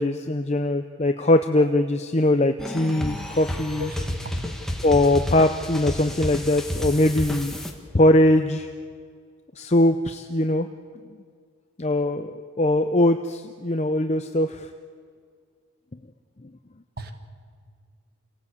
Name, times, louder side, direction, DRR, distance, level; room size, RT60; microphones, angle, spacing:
voice 1, 0.0-3.9 4.8-7.6 7.9-8.7 9.6-10.7 11.8-14.7, left 1 dB, 30° left, 7 dB, 0.6 m, -21 dB
sound 1, 2.6-7.7, left 1 dB, ahead, 1.7 m, -31 dB
voice 2, 3.8-4.4 17.0-17.1, equal, 45° right, 7 dB, 1.9 m, -35 dB
27.5 x 17.5 x 8.3 m, 2.1 s
head